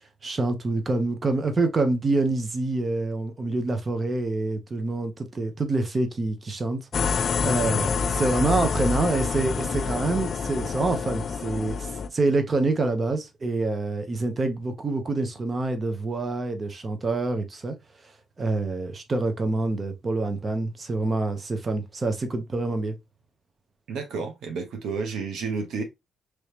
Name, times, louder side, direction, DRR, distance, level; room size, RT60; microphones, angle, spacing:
voice 1, 0.2-17.7 18.4-22.9, right 2 dB, 35° right, 0.9 m, -26 dB
sound 1, 6.9-12.1, left 5 dB, 50° left, 0.3 m, -27 dB
voice 2, 23.9-25.8, right 4 dB, 75° right, 0.9 m, -31 dB
3.1 x 2.9 x 3.2 m
cardioid pair, 90°, 0 cm